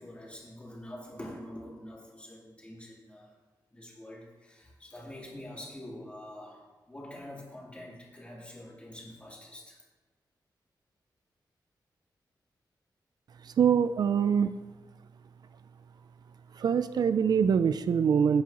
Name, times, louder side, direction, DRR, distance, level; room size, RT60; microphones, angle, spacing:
voice 1, 0.0-3.3 3.7-9.8, left 1 dB, 15° left, -5 dB, 3.1 m, -46 dB
voice 2, 13.4-14.6 16.5-18.4, right 7 dB, 65° right, 12 dB, 0.3 m, -24 dB
15.5 x 8.3 x 2.9 m, 1.3 s
wide cardioid pair, 130°, 8 cm